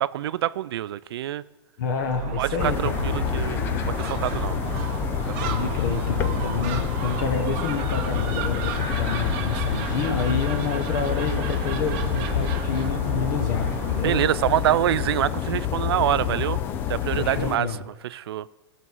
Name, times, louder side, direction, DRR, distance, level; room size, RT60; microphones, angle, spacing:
voice 1, 0.0-1.4 2.4-4.6 5.4-5.7 14.0-16.6 16.9-17.7 18.0-18.5, right 12 dB, 60° right, 19 dB, 0.4 m, -25 dB
voice 2, 1.8-3.0 5.4-14.2 17.2-17.8, left 6 dB, 45° left, 4 dB, 1.1 m, -29 dB
Gull seagull, 2.0-14.4, right 8 dB, 30° right, 0.8 m, -32 dB
sound 1, 2.6-17.6, left 11 dB, 15° left, 0.4 m, -28 dB
17.0 x 6.3 x 5.5 m, 1.1 s
supercardioid pair, 165°, 14 cm